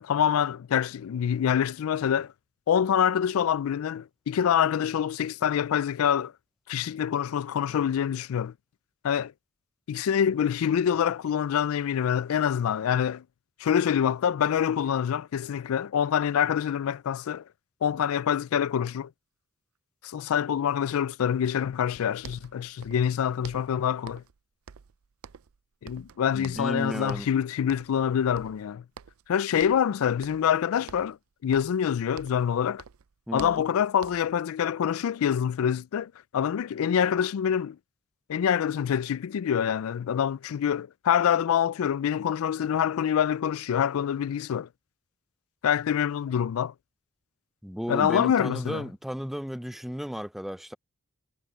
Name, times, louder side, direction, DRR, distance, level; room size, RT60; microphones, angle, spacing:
voice 1, 0.0-2.3 2.7-6.3 6.7-8.5 9.0-9.3 9.9-13.2 13.6-17.4 17.8-19.1 20.0-24.2 25.8-28.8 29.3-31.2 31.4-32.8 33.3-37.8 38.3-44.7 45.6-46.7 47.9-48.8, left 8 dB, 75° left, 0.3 m, -26 dB
sound 1, 21.9-22.0 22.2-23.1 23.4-24.4 24.7-25.6 25.9-26.8 27.1-27.4 27.7-28.1 28.4-29.3 29.6-29.9 30.2-30.6 30.9-32.5 32.8-34.4, right 7 dB, 80° right, 0.5 m, -47 dB
voice 2, 26.3-27.3 33.3-33.6 47.6-50.7, equal, ahead, 0.4 m, -34 dB
head